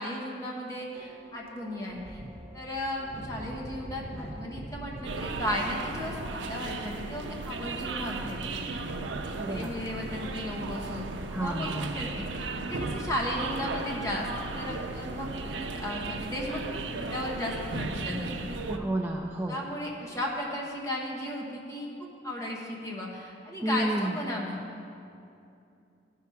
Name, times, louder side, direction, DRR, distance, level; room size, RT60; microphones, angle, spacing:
voice 1, 0.0-2.2 2.5-14.3 14.5-18.8 19.5-24.6, left 1 dB, 15° left, -2 dB, 1.3 m, -35 dB
sound 1, 0.9-8.7, right 1 dB, 35° right, 0.8 m, -45 dB
sound 2, 5.0-18.8, right 3 dB, 90° right, 0.6 m, -36 dB
voice 2, 9.4-9.8 11.3-12.0 18.7-19.6 23.6-24.2, right 1 dB, 10° right, -1 dB, 0.4 m, -31 dB
13.5 x 4.7 x 5.8 m, 2.6 s
head